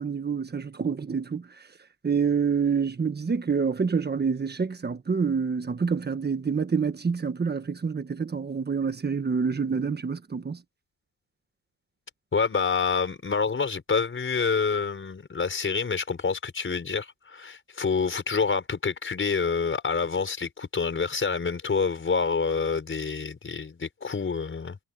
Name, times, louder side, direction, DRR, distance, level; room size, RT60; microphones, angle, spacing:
voice 1, 0.0-1.5 2.0-10.6, right 5 dB, 30° right, 1.4 m, -27 dB
voice 2, 12.3-24.8, left 5 dB, 35° left, 5.6 m, -27 dB
wide cardioid pair, 155°, 35 cm